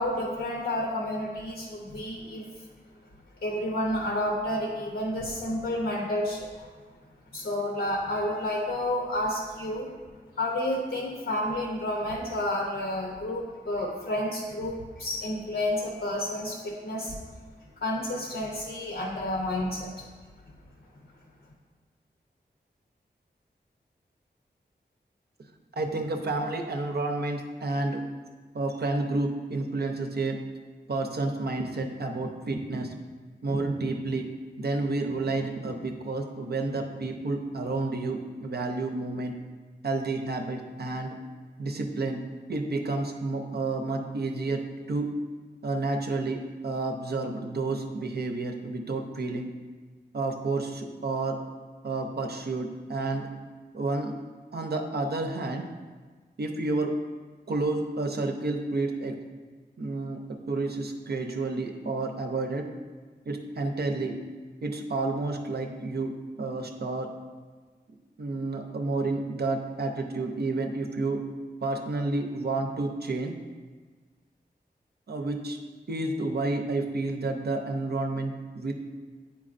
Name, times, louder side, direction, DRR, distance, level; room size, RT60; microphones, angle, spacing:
voice 1, 0.0-2.4 3.4-6.7 7.3-9.9 10.4-17.1 17.8-19.9, left 1 dB, 85° left, -1 dB, 0.8 m, -30 dB
voice 2, 25.8-28.0 28.5-30.4 30.9-32.9 33.4-34.3 34.6-39.3 39.8-41.1 41.6-42.2 42.5-44.6 44.9-45.1 45.6-49.5 50.1-51.4 51.8-53.3 53.7-54.1 54.5-55.6 56.4-56.9 57.5-59.1 59.8-60.2 60.5-62.6 63.3-64.2 64.6-66.1 66.4-67.1 68.2-71.2 71.6-73.3 75.1-75.6 75.9-78.7, right 3 dB, 65° right, 3 dB, 0.6 m, -30 dB
8.3 x 4.6 x 2.5 m, 1.4 s
wide cardioid pair, 100°, 18 cm